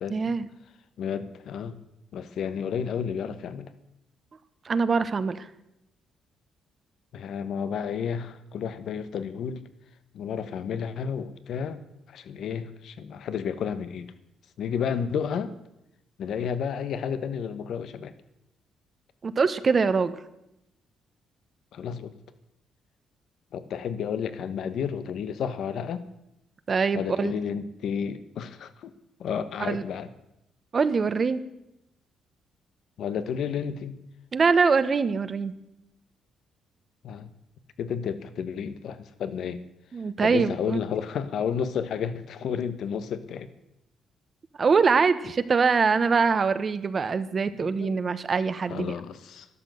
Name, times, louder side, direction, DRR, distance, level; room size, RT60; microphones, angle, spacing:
voice 1, 0.1-0.5 4.6-5.5 19.2-20.1 26.7-27.3 29.6-29.8 30.7-31.4 34.3-35.5 39.9-40.8 44.6-49.0, right 5 dB, 40° right, 12 dB, 1.1 m, -23 dB
voice 2, 1.0-1.8 2.1-3.7 7.1-9.6 10.1-11.8 12.1-14.1 14.6-15.5 16.2-18.1 21.7-22.1 23.5-26.0 26.9-28.9 29.2-30.1 33.0-34.0 37.0-37.3 37.8-39.6 40.2-43.5 47.6-48.0 48.7-49.5, left 7 dB, 70° left, 12 dB, 1.2 m, -31 dB
12.5 x 12.0 x 7.9 m, 0.87 s
cardioid pair, 90°, 0 cm